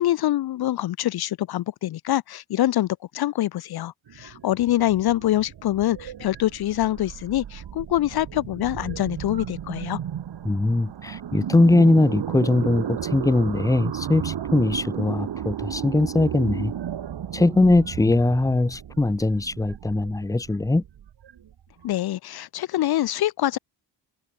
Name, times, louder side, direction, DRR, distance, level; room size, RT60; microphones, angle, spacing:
voice 1, 0.0-10.0 21.8-23.6, left 14 dB, 70° left, 0.5 m, -25 dB
sound 1, 4.1-21.9, right 9 dB, 80° right, 2.3 m, -34 dB
voice 2, 10.4-16.7 17.3-20.8, left 2 dB, 10° left, 0.6 m, -21 dB
wide cardioid pair, 120°, 40 cm